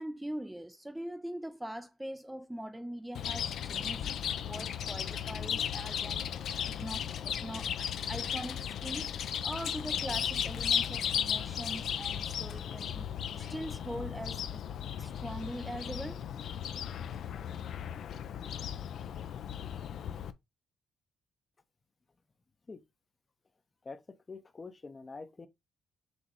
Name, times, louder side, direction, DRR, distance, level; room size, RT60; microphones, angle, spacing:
voice 1, 0.0-4.1 4.4-6.3 6.7-9.1 9.4-13.1 13.4-14.6 15.0-16.3, right 1 dB, 5° right, 0.3 m, -42 dB
Chirp tweet, 3.1-20.3, left 9 dB, 70° left, 0.4 m, -35 dB
voice 2, 23.8-25.5, left 4 dB, 30° left, 0.6 m, -46 dB
6.1 x 2.6 x 3.0 m
cardioid pair, 90°, 0 cm